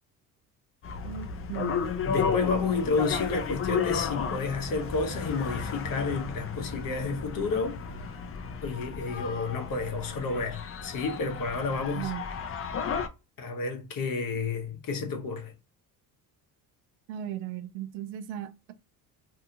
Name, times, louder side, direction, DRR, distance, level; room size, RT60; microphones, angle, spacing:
sound 1, 0.8-13.1, left 6 dB, 30° left, 0.5 m, -33 dB
voice 1, 1.0-1.9 12.0-12.3 17.1-18.7, right 11 dB, 75° right, 0.6 m, -37 dB
voice 2, 2.1-8.2 8.6-12.1 13.4-15.5, left 4 dB, 45° left, 0.9 m, -30 dB
2.8 x 2.3 x 2.7 m
supercardioid pair, 75°, 46 cm